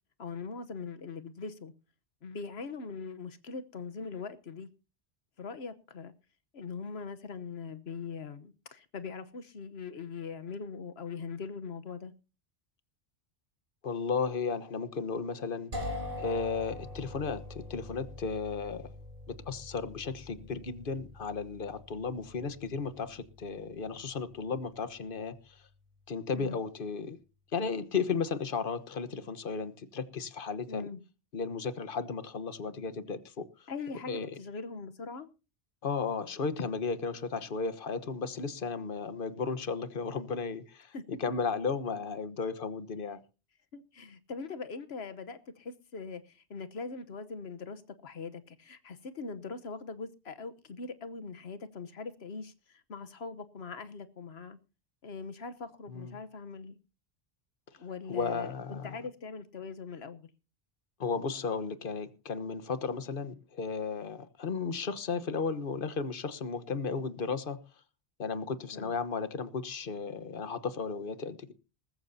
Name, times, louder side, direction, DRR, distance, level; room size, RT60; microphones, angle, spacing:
voice 1, 0.2-1.7 2.2-4.7 5.4-6.1 6.5-12.1 26.3-26.6 30.7-31.0 33.7-35.3 40.9-41.0 43.7-54.6 55.0-56.8 57.8-60.3 68.7-68.9, left 4 dB, 85° left, 1.3 m, -41 dB
voice 2, 13.8-15.7 16.2-18.9 19.3-25.6 26.1-27.2 27.5-30.9 31.3-33.7 34.1-34.3 35.8-43.2 55.9-56.1 57.7-57.8 58.1-59.0 61.0-67.6 68.2-71.5, left 5 dB, 60° left, 1.4 m, -34 dB
sound 1, 15.7-25.5, left 2 dB, 60° right, 3.5 m, -44 dB
20.0 x 14.5 x 2.8 m
omnidirectional pair, 1.0 m